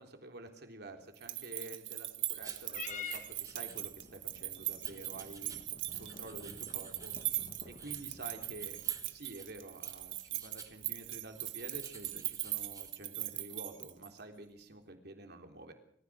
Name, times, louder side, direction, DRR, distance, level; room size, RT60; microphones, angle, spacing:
voice 1, 0.0-5.6 6.0-7.1 7.7-8.8 9.1-15.7, right 2 dB, 60° right, 5 dB, 3.7 m, -49 dB
sound 1, 1.1-14.2, right 15 dB, 85° right, 1.8 m, -40 dB
sound 2, 2.3-12.9, right 4 dB, 20° right, 2.2 m, -55 dB
Purr / Meow, 2.7-9.2, left 5 dB, 40° left, 2.3 m, -50 dB
28.0 x 15.0 x 6.3 m, 0.68 s
head